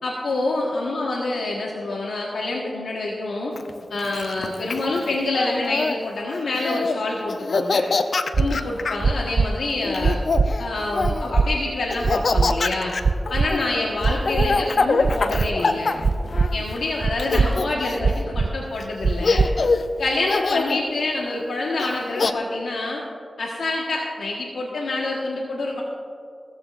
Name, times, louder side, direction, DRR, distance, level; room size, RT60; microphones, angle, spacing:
voice 1, 0.0-3.5 3.9-7.8 8.4-10.2 10.6-12.9 13.3-15.9 16.5-19.4 20.0-23.0 23.4-25.8, left 2 dB, 90° left, -3 dB, 1.4 m, -27 dB
Laughter, 3.6-6.0 6.5-7.0 7.3-9.0 9.8-11.3 11.9-16.8 17.2-18.2 18.8-18.9 19.2-19.9 20.3-20.8 21.8-22.3, left 3 dB, 65° left, 0.6 m, -24 dB
sound 1, 8.3-8.5 9.0-9.5 10.0-10.5 11.0-11.5 12.0-12.5 13.0-13.5 14.0-14.5 15.0-15.5 16.0-16.5 17.0-17.5 18.0-18.5 19.0-19.5, right 4 dB, 60° right, 0.5 m, -20 dB
20.0 x 14.0 x 2.6 m, 2.4 s
cardioid pair, 55°, 0 cm